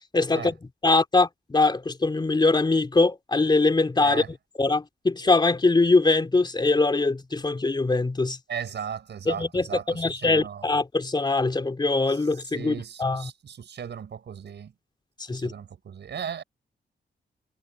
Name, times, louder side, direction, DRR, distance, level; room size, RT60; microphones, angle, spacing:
voice 1, 0.1-4.2 4.6-8.4 9.3-13.3 15.3-15.5, left 3 dB, 25° left, 3.4 m, -22 dB
voice 2, 8.5-10.7 12.1-12.2 12.5-14.7 15.3-16.4, right 7 dB, 70° right, 5.6 m, -36 dB
wide cardioid pair, 145°, 19 cm